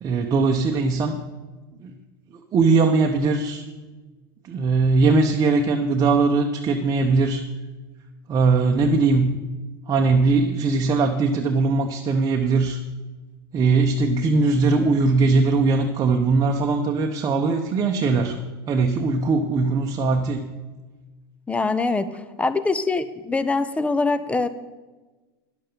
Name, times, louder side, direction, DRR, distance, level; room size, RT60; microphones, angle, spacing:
voice 1, 0.0-1.2 1.8-1.9 2.5-3.6 4.5-7.4 8.3-9.4 9.9-12.8 13.5-18.4 18.7-20.4, right 3 dB, 30° right, 2 dB, 0.9 m, -20 dB
voice 2, 21.5-24.5, left 3 dB, 10° left, 13 dB, 0.7 m, -23 dB
10.5 x 7.7 x 6.9 m, 1.2 s
supercardioid pair, 120°, 13 cm